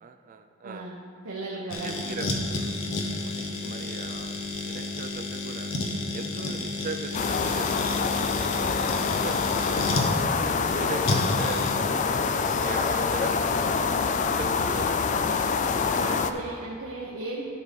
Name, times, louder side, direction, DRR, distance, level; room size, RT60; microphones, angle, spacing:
voice 1, 0.0-0.9 1.8-2.8 3.2-4.4 4.6-5.8 6.1-8.3 8.9-10.3 10.7-12.3 12.6-13.7 14.0-15.6, right 4 dB, 40° right, 7 dB, 0.3 m, -39 dB
voice 2, 0.6-1.0 1.2-2.2 10.5-11.2 15.8-17.4, right 2 dB, 85° right, -4 dB, 1.0 m, -36 dB
sound 1, 1.7-10.1 11.0-11.7, left 2 dB, 65° left, 1.0 m, -31 dB
sound 2, 7.1-16.3, left 5 dB, 35° left, 0.3 m, -26 dB
11.5 x 4.4 x 5.2 m, 2.6 s
head